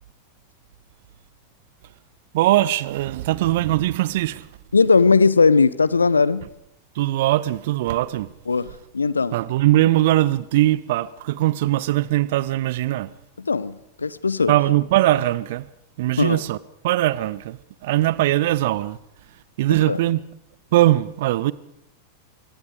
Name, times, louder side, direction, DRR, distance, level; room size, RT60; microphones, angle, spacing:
voice 1, 2.3-4.5 6.9-8.3 9.3-13.1 14.5-15.7 16.0-16.6 16.8-19.0 19.6-20.2 20.7-21.5, right 15 dB, 55° right, 0.9 m, -20 dB
voice 2, 4.7-6.5 8.5-9.3 13.4-14.6 16.2-16.4 19.9-20.0, left 4 dB, 75° left, 0.9 m, -18 dB
24.5 x 23.5 x 5.1 m
figure-of-eight pair, 90°, 0 cm